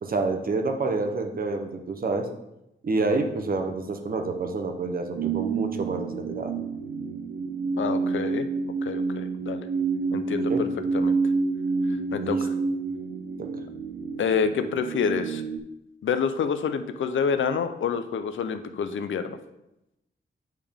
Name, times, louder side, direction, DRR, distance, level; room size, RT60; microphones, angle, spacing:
voice 1, 0.0-2.3 2.8-6.5 10.5-10.6 12.2-12.4, right 3 dB, 45° right, 5 dB, 0.7 m, -28 dB
sound 1, 5.2-15.6, right 4 dB, 80° right, 0.4 m, -28 dB
voice 2, 7.8-8.5 8.8-9.7 10.1-10.7 10.9-11.2 12.1-12.5 14.2-15.4 16.0-19.4, left 6 dB, 75° left, 9 dB, 0.5 m, -27 dB
8.9 x 3.4 x 3.5 m, 0.89 s
wide cardioid pair, 140°, 20 cm